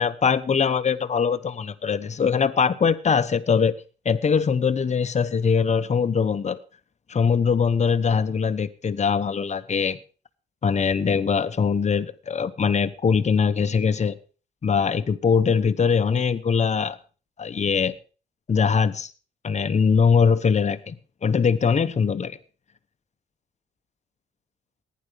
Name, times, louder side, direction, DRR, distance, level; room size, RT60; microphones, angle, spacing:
voice 1, 0.0-3.7 4.0-6.6 7.1-10.0 10.6-14.2 14.6-17.0 17.4-17.9 18.5-19.1 19.4-21.0 21.2-22.4, left 6 dB, 35° left, 1.0 m, -22 dB
15.0 x 10.5 x 5.1 m
cardioid pair, 90°, 20 cm